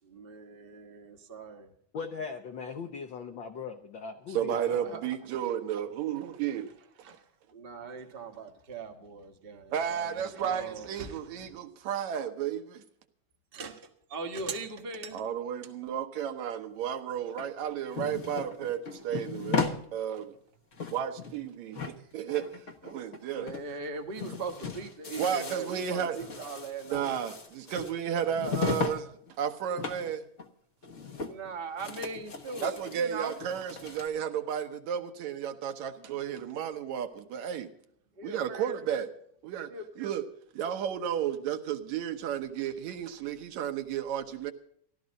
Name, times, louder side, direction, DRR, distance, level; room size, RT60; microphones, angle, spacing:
voice 1, 0.0-1.7 4.7-5.2 6.5-6.6 7.0-7.3 7.5-11.5 13.5-15.2 23.3-27.1 31.2-33.3 38.2-38.8 39.7-39.8, right 4 dB, 40° right, 5 dB, 0.8 m, -40 dB
voice 2, 1.9-4.9, left 5 dB, 75° left, 6 dB, 1.1 m, -39 dB
voice 3, 4.3-6.7 9.7-12.8 15.1-20.3 20.9-22.5 22.8-23.5 25.2-26.2 26.9-30.3 32.6-37.7 38.2-39.1 39.4-39.7 40.0-40.2 40.5-44.5, right 9 dB, 75° right, 8 dB, 2.3 m, -33 dB
sound 1, 17.4-19.8 20.2-20.3 20.6-21.5 21.7-23.2 23.5-23.6 23.9-29.0 29.3-30.1 30.4-30.5 30.8-31.5 31.8-34.1, left 5 dB, 55° left, 0.8 m, -36 dB
15.5 x 12.5 x 5.2 m, 0.65 s
omnidirectional pair, 3.4 m